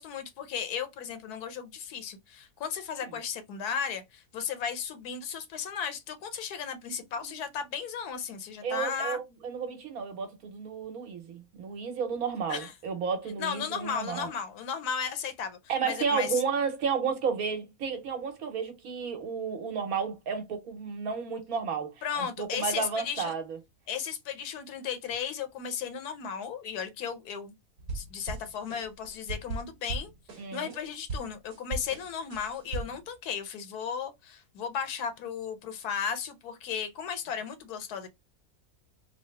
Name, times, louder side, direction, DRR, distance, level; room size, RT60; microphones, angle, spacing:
voice 1, 0.0-9.2 12.5-12.7 13.4-15.6 15.8-16.4 22.0-23.3 23.9-27.5 27.9-30.1 30.5-38.1, left 7 dB, 85° left, 1.3 m, -35 dB
voice 2, 8.6-14.3 15.7-23.6 30.4-30.7, right 6 dB, 70° right, 1.4 m, -32 dB
sound 1, 27.8-30.8 31.1-33.1, right 3 dB, 85° right, 1.4 m, -38 dB
3.7 x 2.0 x 3.2 m
omnidirectional pair, 1.6 m